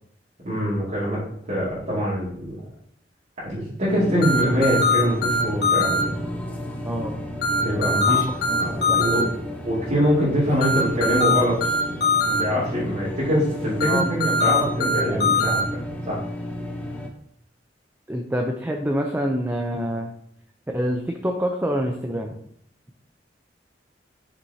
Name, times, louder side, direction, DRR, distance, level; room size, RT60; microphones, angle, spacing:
voice 1, 0.4-1.2 1.5-2.6 3.4-6.1 7.6-8.2 8.6-9.3 9.6-11.6 11.9-12.0 12.2-16.2, equal, 50° right, -10 dB, 2.4 m, -24 dB
sound 1, 3.9-17.1, equal, 10° left, 0.9 m, -32 dB
sound 2, 4.2-6.0 7.4-9.2 10.6-12.4 13.8-15.6, left 2 dB, 65° left, 1.5 m, -21 dB
voice 2, 6.8-7.2 8.0-8.2 8.5-9.4 13.9-14.1 14.5-15.2 18.1-20.1 20.7-22.3, equal, 10° right, 2 dB, 0.5 m, -27 dB
7.7 x 6.0 x 2.8 m, 0.68 s
head